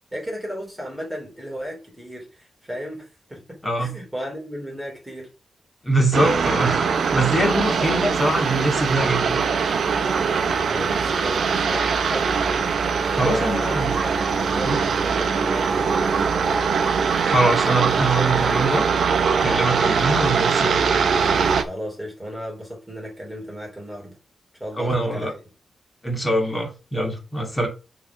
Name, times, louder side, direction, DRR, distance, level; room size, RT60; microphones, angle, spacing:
voice 1, 0.1-5.3 7.8-8.2 10.7-12.4 13.1-16.1 21.6-24.2 24.6-25.3, equal, 5° right, 3.1 m, -34 dB
voice 2, 3.6-3.9 5.8-6.8 7.1-9.4 13.1-13.9 14.6-14.8 17.2-18.8 19.4-20.8 24.8-25.3 26.0-27.7, right 1 dB, 15° left, 2.5 m, -23 dB
sound 1, 6.1-21.6, right 5 dB, 70° right, 0.9 m, -22 dB
6.6 x 3.9 x 5.8 m
wide cardioid pair, 150°, 0 cm